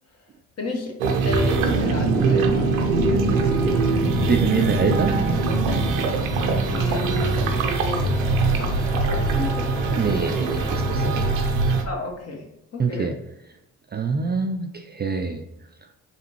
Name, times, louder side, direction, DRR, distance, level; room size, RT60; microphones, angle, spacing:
voice 1, 0.6-0.9 1.2-2.7 6.4-8.1 8.6-10.1 11.9-12.5 12.7-13.2, left 2 dB, 40° left, 2 dB, 1.3 m, -32 dB
sound 1, 1.0-11.8, right 3 dB, 85° right, 0.6 m, -22 dB
sound 2, 3.0-11.4, left 2 dB, 15° left, 0.8 m, -34 dB
voice 2, 3.9-5.1 10.0-11.3 12.8-13.1 13.9-15.4, right 5 dB, 25° right, 4 dB, 0.4 m, -25 dB
4.2 x 3.5 x 3.0 m, 0.84 s
hypercardioid pair, 45°, 39 cm